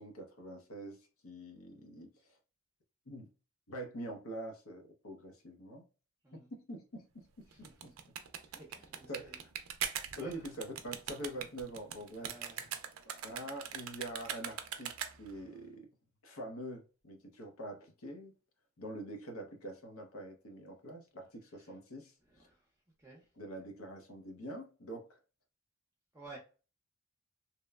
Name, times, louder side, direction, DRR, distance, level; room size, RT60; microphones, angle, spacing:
voice 1, 0.0-2.4 3.1-3.3 3.7-5.8 6.3-7.9 9.1-9.5 10.2-12.7 13.2-15.9 16.2-18.3 18.8-22.5 23.4-25.2, right 1 dB, 85° left, 0.7 m, -45 dB
voice 2, 7.5-7.9 8.6-9.4 10.2-10.4 12.2-12.7 22.5-22.6 23.0-23.2 26.1-26.4, right 3 dB, 15° right, 0.5 m, -52 dB
sound 1, 7.5-15.4, right 9 dB, 85° right, 0.4 m, -41 dB
2.9 x 2.0 x 2.3 m
head